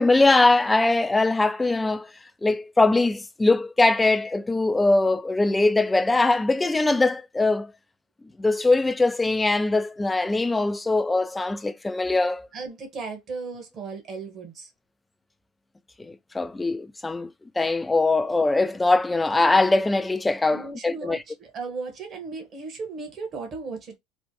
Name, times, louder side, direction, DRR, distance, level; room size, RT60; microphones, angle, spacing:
voice 1, 0.0-2.1 2.4-7.7 8.4-12.5 16.0-17.3 17.6-21.2, left 2 dB, 10° left, 0.4 m, -22 dB
voice 2, 12.5-14.7 20.5-24.0, right 4 dB, 40° right, 1.2 m, -36 dB
3.2 x 2.1 x 2.8 m
hypercardioid pair, 95°, 0 cm